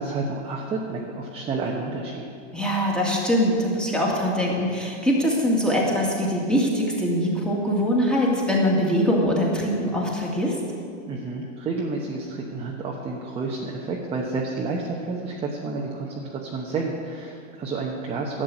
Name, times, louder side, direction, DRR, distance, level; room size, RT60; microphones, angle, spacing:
voice 1, 0.0-2.3 11.1-18.4, right 3 dB, 15° right, -2 dB, 1.0 m, -30 dB
voice 2, 2.5-10.6, equal, ahead, -3 dB, 2.1 m, -23 dB
12.0 x 7.9 x 8.9 m, 2.3 s
supercardioid pair, 145°, 37 cm